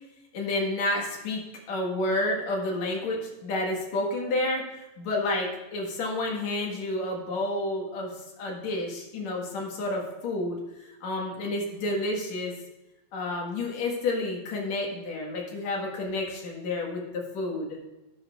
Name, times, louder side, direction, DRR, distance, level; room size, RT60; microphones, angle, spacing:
voice 1, 0.3-1.4 1.7-4.6 5.0-8.1 8.4-10.6 11.0-12.5 13.1-17.8, left 2 dB, 70° left, -1 dB, 2.8 m, -30 dB
12.0 x 11.0 x 2.4 m, 0.99 s
omnidirectional pair, 3.3 m